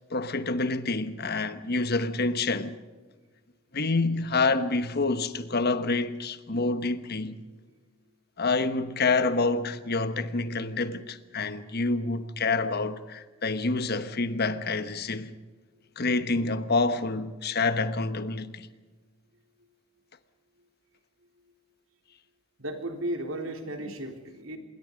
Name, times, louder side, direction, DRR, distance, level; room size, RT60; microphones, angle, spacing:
voice 1, 0.1-2.7 3.7-7.4 8.4-15.3 16.0-18.7, left 3 dB, 50° left, 1.2 m, -27 dB
voice 2, 22.6-24.6, right 1 dB, 75° right, 3.7 m, -34 dB
26.5 x 22.0 x 5.2 m
head